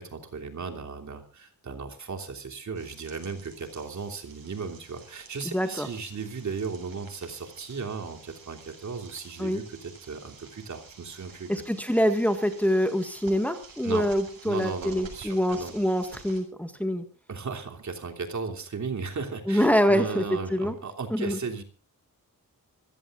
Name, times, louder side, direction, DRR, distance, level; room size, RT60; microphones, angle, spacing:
voice 1, 0.0-11.5 13.8-14.1 14.4-15.7 17.3-21.6, right 5 dB, 50° right, 4 dB, 3.1 m, -36 dB
sound 1, 2.7-16.4, right 5 dB, 75° right, 7.1 m, -50 dB
voice 2, 5.5-5.9 9.4-9.6 11.5-17.0 19.5-20.2 20.5-20.7 21.1-21.4, equal, 5° left, 6 dB, 1.8 m, -25 dB
26.5 x 16.0 x 2.5 m, 0.36 s
wide cardioid pair, 165°, 36 cm